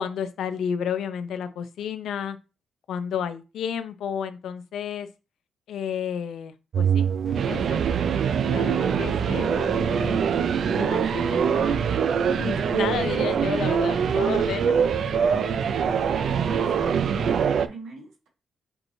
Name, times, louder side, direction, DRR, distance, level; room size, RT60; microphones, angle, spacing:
voice 1, 0.0-2.4 2.9-5.1 5.7-7.1 7.5-7.8 8.4-10.2 10.7-11.8 12.3-14.8, left 8 dB, 85° left, 10 dB, 0.5 m, -31 dB
sound 1, 6.7-17.7, right 7 dB, 65° right, 0.3 m, -23 dB
sound 2, 7.3-17.5, left 2 dB, 15° left, 0.6 m, -38 dB
voice 2, 15.2-16.7 17.1-18.3, right 4 dB, 90° right, 0 dB, 1.5 m, -41 dB
6.6 x 3.0 x 2.7 m, 0.29 s
cardioid pair, 115°, 0 cm